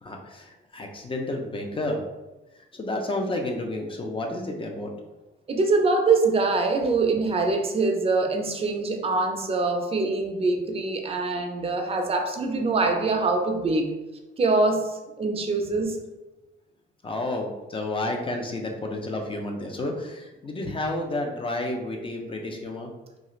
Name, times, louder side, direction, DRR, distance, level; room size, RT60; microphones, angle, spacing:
voice 1, 0.0-2.1 2.5-4.9 17.0-22.9, left 1 dB, 25° left, 2 dB, 0.4 m, -31 dB
voice 2, 5.5-13.9 14.4-16.0, right 3 dB, 30° right, 4 dB, 0.5 m, -24 dB
2.4 x 2.4 x 3.0 m, 1.1 s
cardioid pair, 90°, 20 cm